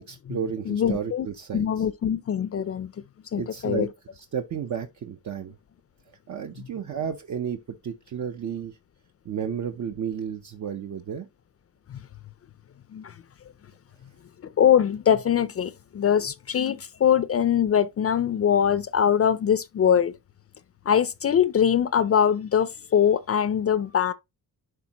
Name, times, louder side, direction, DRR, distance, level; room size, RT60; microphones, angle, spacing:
voice 1, 0.0-1.9 3.4-3.9 4.1-5.5 6.3-8.8 9.2-11.3, right 7 dB, 50° right, 0.8 m, -32 dB
voice 2, 0.7-1.3 1.5-2.9 3.3-3.9 11.9-12.0 12.9-13.1 14.4-20.1 20.9-24.1, left 8 dB, 40° left, 0.5 m, -22 dB
11.5 x 4.4 x 2.9 m
wide cardioid pair, 155°, 36 cm